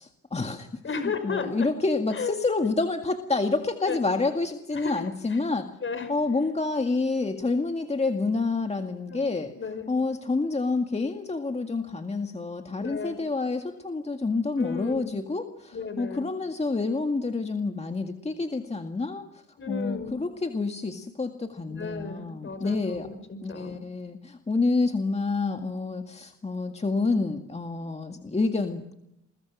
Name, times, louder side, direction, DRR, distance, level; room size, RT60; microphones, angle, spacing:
voice 1, 0.0-0.7 1.2-5.7 6.1-9.5 9.9-23.1 23.4-28.9, left 3 dB, 20° left, 6 dB, 1.8 m, -28 dB
voice 2, 0.8-1.7 2.1-2.3 3.8-4.0 4.7-5.0 5.3-5.4 5.8-6.1 9.1-9.2 9.6-9.9 12.8-13.2 14.6-15.1 15.7-16.3 19.6-20.2 21.6-23.8, left 5 dB, 40° left, 10 dB, 5.6 m, -34 dB
28.5 x 22.5 x 6.1 m, 0.84 s
cardioid pair, 90°, 30 cm